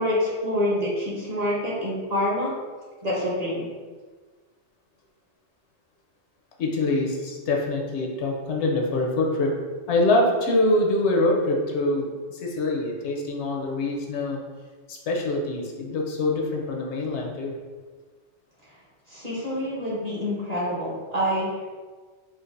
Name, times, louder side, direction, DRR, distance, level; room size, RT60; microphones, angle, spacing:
voice 1, 0.0-2.5 3.0-3.7 19.1-21.7, left 1 dB, 35° right, -6 dB, 0.9 m, -26 dB
voice 2, 6.6-9.5 9.9-14.4 14.9-17.5, left 2 dB, 75° left, 0 dB, 0.9 m, -24 dB
4.5 x 2.5 x 2.5 m, 1.4 s
omnidirectional pair, 1.2 m